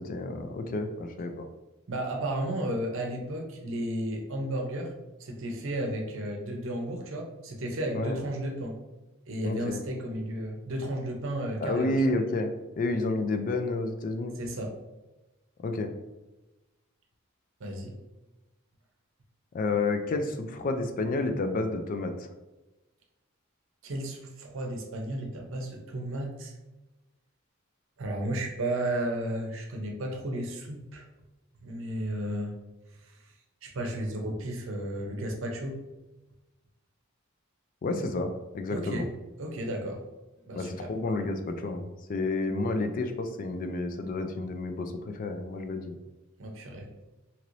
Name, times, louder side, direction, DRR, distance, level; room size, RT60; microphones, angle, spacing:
voice 1, 0.0-1.5 7.9-8.2 9.4-9.8 11.6-14.4 15.6-15.9 19.5-22.3 37.8-39.1 40.5-46.0, left 2 dB, 40° left, 6 dB, 0.3 m, -30 dB
voice 2, 1.9-4.9 5.2-8.7 9.3-12.1 14.4-14.7 17.6-18.0 23.8-26.5 28.0-31.1 31.6-32.5 33.6-35.8 38.7-39.1 39.4-40.0 40.5-40.9 46.4-46.9, right 1 dB, 70° right, 1 dB, 0.6 m, -33 dB
3.1 x 2.9 x 2.5 m, 1.1 s
head